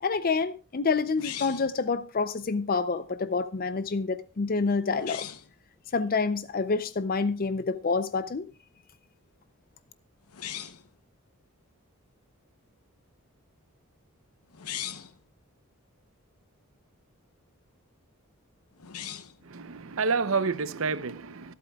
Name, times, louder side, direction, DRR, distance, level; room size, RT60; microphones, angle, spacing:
voice 1, 0.0-5.3 5.9-8.5, left 4 dB, 40° left, 0.5 m, -28 dB
sound 1, 1.2-1.8 4.9-5.5 10.3-10.9 14.5-15.2 18.8-19.4, left 11 dB, 90° left, 0.8 m, -39 dB
voice 2, 19.4-21.5, right 4 dB, 60° right, 0.7 m, -29 dB
25.0 x 8.4 x 2.3 m
head